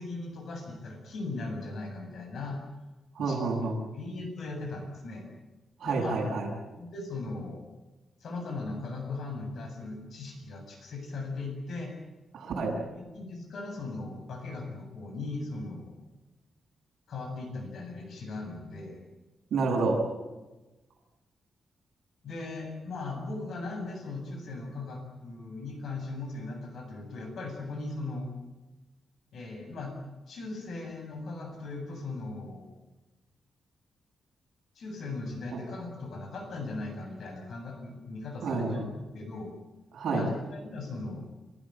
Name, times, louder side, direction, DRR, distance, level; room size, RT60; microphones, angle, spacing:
voice 1, 0.0-2.6 3.2-3.4 3.9-5.2 5.8-6.1 6.8-7.7 8.2-11.9 13.0-16.0 17.1-19.0 22.2-28.3 29.3-29.9 30.3-32.7 34.8-39.5 40.1-41.3, left 3 dB, 60° left, 4 dB, 7.6 m, -38 dB
voice 2, 3.2-3.8 5.8-6.5 12.3-12.7 19.5-20.0 35.5-35.6 38.4-38.9 39.9-40.2, right 3 dB, 65° right, 0 dB, 7.9 m, -29 dB
30.0 x 15.5 x 9.0 m, 1.1 s
wide cardioid pair, 165°, 0 cm